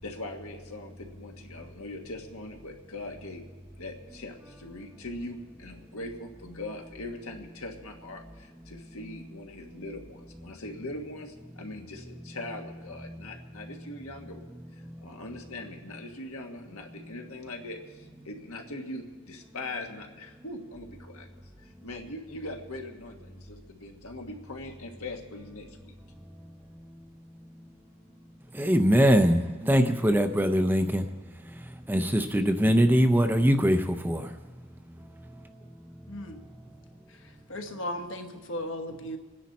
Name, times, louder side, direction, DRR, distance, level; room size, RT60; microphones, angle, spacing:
voice 1, 0.0-3.5 3.7-14.4 14.7-25.9, left 2 dB, 80° left, 3 dB, 1.6 m, -41 dB
voice 2, 28.5-31.1 31.4-34.4, equal, 10° right, 7 dB, 0.5 m, -23 dB
voice 3, 36.1-36.4 37.1-39.2, left 1 dB, 60° left, 6 dB, 1.2 m, -36 dB
26.0 x 10.0 x 4.2 m, 1.3 s
head